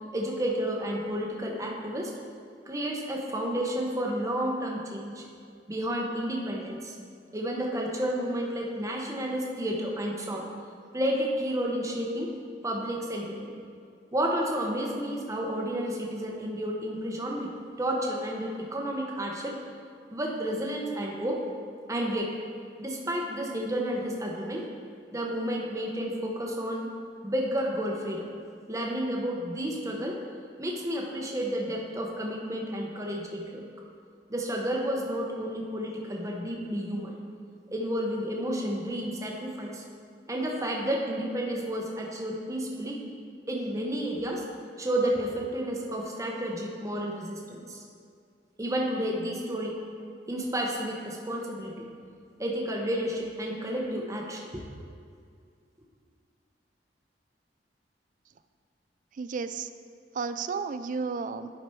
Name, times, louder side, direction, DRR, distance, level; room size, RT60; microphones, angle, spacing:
voice 1, 0.1-2.1 2.7-5.2 5.7-6.9 7.3-10.5 10.9-12.3 12.6-13.5 14.1-19.6 20.1-21.4 21.9-22.3 22.8-24.7 25.1-26.9 27.2-28.3 28.7-30.2 30.6-33.6 34.3-37.1 37.7-39.8 40.3-43.0 43.5-44.4 44.8-47.8 48.6-49.8 50.3-51.7 52.4-54.6, equal, 20° right, -1 dB, 1.0 m, -31 dB
voice 2, 59.2-59.7 60.2-61.6, right 5 dB, 45° right, 11 dB, 0.3 m, -33 dB
10.5 x 5.0 x 4.6 m, 2.2 s
head